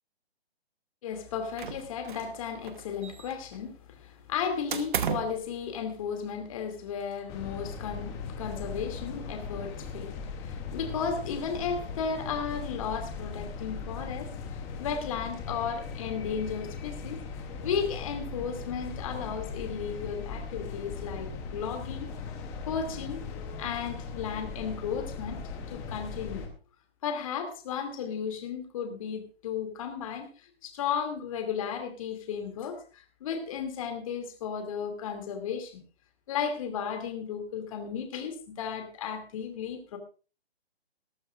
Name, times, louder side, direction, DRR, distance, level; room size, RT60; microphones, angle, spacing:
voice 1, 1.0-17.2 17.6-22.1 22.7-23.2 23.6-25.4 25.7-26.5 27.0-30.3 30.6-35.7 36.3-40.0, left 7 dB, 30° left, 6 dB, 2.6 m, -34 dB
sound 1, 1.6-2.4 2.6-3.6 4.7-5.4, right 8 dB, 50° right, 1.1 m, -34 dB
sound 2, 7.3-26.5, left 5 dB, 10° left, 0.8 m, -39 dB
19.5 x 12.5 x 2.5 m, 0.34 s
hypercardioid pair, 165°, 32 cm